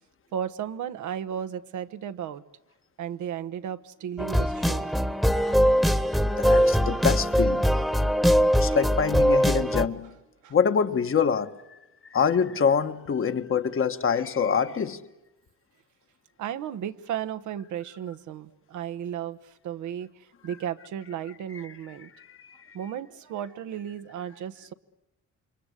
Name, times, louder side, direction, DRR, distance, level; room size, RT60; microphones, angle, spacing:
voice 1, 0.3-2.4 3.0-4.9 10.4-10.5 16.4-19.4 19.6-20.1 20.4-22.1 22.7-24.7, right 9 dB, 75° right, 1.1 m, -34 dB
sound 1, 4.2-9.9, equal, ahead, 1.3 m, -22 dB
voice 2, 6.4-7.7 8.6-10.1 10.5-11.8 12.1-15.0 21.6-21.7 22.0-22.8, left 6 dB, 45° left, 1.4 m, -25 dB
27.5 x 23.5 x 8.2 m
cardioid pair, 90°, 30 cm